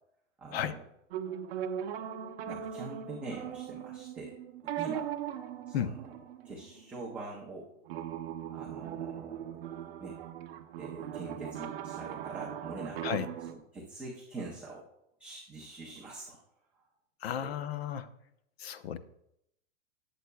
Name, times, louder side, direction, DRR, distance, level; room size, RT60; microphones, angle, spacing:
voice 1, 0.4-0.8 2.5-4.4 4.6-5.1 5.7-5.9 6.4-7.7 8.5-9.6 10.0-10.2 10.8-14.8 15.2-16.4 16.7-16.8 17.4-17.5, right 3 dB, 5° right, -5 dB, 0.5 m, -44 dB
sound 1, 1.1-7.1 7.8-13.5, right 9 dB, 50° right, 0.9 m, -39 dB
voice 2, 17.2-18.1 18.6-19.0, left 9 dB, 55° left, 12 dB, 0.8 m, -33 dB
19.0 x 7.9 x 2.3 m, 0.79 s
supercardioid pair, 170°, 37 cm